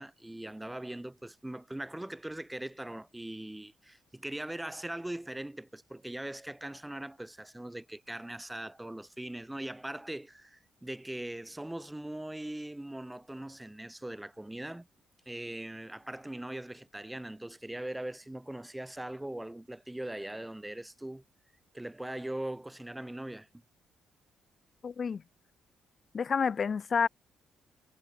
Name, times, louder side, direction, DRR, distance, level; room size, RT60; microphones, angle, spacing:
voice 1, 0.0-14.9 15.3-21.2 21.7-23.5, right 1 dB, 10° right, 4.5 m, -40 dB
voice 2, 24.8-25.2 26.1-27.1, left 6 dB, 45° left, 5.0 m, -29 dB
cardioid pair, 90°, 0 cm